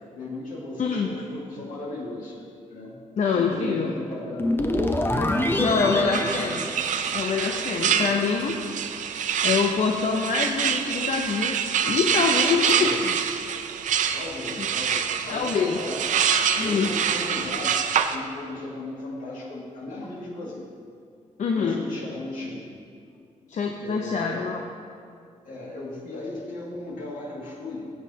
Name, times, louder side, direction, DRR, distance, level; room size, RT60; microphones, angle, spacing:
voice 1, 0.1-2.4 2.7-3.0 3.3-4.9 5.2-6.2 7.7-8.2 12.3-13.0 14.1-16.2 16.6-17.8 18.1-20.7 21.5-22.6 23.8-24.5 25.4-27.9, left 2 dB, 80° left, -4 dB, 2.2 m, -36 dB
voice 2, 0.8-1.1 3.2-3.9 5.6-6.6 7.1-8.6 8.9-9.0 9.4-11.6 11.8-13.1 14.6-14.7 15.3-15.8 16.6-16.9 21.4-21.8 23.5-24.6, left 5 dB, 65° left, 1 dB, 0.7 m, -25 dB
sound 1, 4.4-7.7, left 1 dB, 15° left, 0.7 m, -26 dB
sound 2, 6.1-18.2, right 7 dB, 70° right, 0.5 m, -26 dB
15.5 x 7.4 x 2.8 m, 2.3 s
cardioid pair, 70°, 13 cm